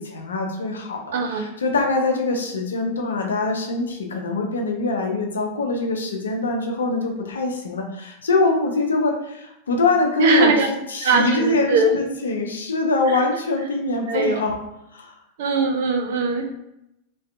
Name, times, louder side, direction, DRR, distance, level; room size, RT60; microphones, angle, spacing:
voice 1, 0.0-10.5 10.9-14.6 14.9-15.1, left 3 dB, 70° left, 2 dB, 0.4 m, -23 dB
voice 2, 1.1-1.4 10.2-10.7 11.0-12.0 13.1-13.2 14.1-14.4 15.4-16.5, right 3 dB, 55° right, 4 dB, 0.4 m, -20 dB
2.5 x 2.2 x 2.4 m, 0.85 s
figure-of-eight pair, 90°, 0 cm